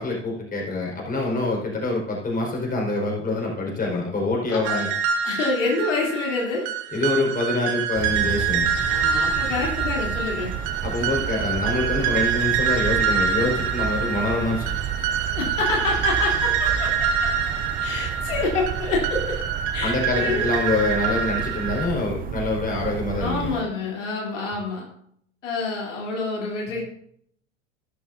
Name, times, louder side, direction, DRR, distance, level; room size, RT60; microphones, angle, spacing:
voice 1, 0.0-4.9 6.9-8.7 10.8-14.8 19.8-23.6, left 2 dB, 25° left, -1 dB, 4.9 m, -25 dB
voice 2, 4.5-4.9 5.2-6.6 8.9-10.5 15.4-17.4 17.8-19.4 19.7-20.5 22.2-22.4 23.2-24.9 25.4-26.8, left 3 dB, 85° left, -2 dB, 3.4 m, -27 dB
sound 1, 4.6-21.8, right 7 dB, 55° right, 2.3 m, -26 dB
sound 2, 8.0-23.6, right 9 dB, 25° right, 0.6 m, -32 dB
12.5 x 12.0 x 2.7 m, 0.66 s
hypercardioid pair, 90°, 36 cm